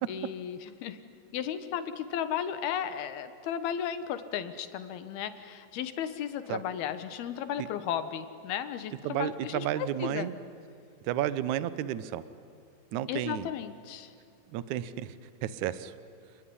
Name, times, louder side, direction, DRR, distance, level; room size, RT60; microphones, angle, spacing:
voice 1, 0.1-1.0 1.3-10.3 13.1-14.1, left 9 dB, 85° left, 11 dB, 3.3 m, -35 dB
voice 2, 9.0-10.3 11.1-12.2 12.9-13.5 14.5-15.1 15.4-15.9, right 12 dB, 70° right, 15 dB, 2.0 m, -32 dB
29.5 x 20.5 x 9.9 m, 2.6 s
omnidirectional pair, 4.3 m